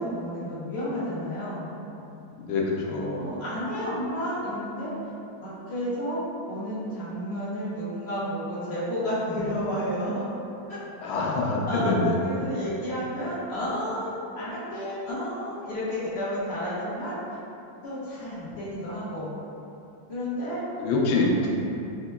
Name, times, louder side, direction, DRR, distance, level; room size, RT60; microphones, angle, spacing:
voice 1, 0.0-1.6 3.2-4.9 5.4-6.2 6.5-10.3 10.7-11.2 11.7-11.9 12.2-17.4 17.8-19.3 20.1-20.6 21.1-21.2, equal, 45° left, -11 dB, 0.9 m, -31 dB
voice 2, 2.4-3.2 11.0-12.2 20.8-21.6, left 2 dB, 90° left, -2 dB, 1.4 m, -25 dB
5.4 x 2.8 x 2.2 m, 2.9 s
omnidirectional pair, 2.1 m